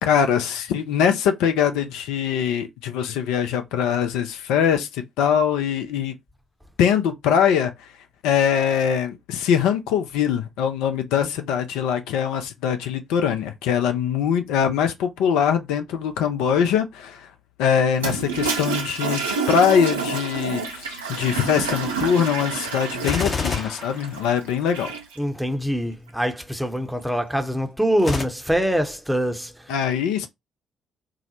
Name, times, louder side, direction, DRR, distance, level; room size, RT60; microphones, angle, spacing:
voice 1, 0.0-6.1 6.8-7.7 8.2-17.3 17.6-24.9 29.7-30.3, left 8 dB, 65° left, 0.4 m, -22 dB
Toilet flush, 17.9-25.2, right 4 dB, 80° right, 0.5 m, -28 dB
Gunshot gunfire, 23.0-24.8 28.0-28.2, left 4 dB, 35° left, 0.7 m, -27 dB
voice 2, 25.2-29.5, equal, 5° right, 0.7 m, -24 dB
3.8 x 2.0 x 2.8 m
figure-of-eight pair, 45°, 0 cm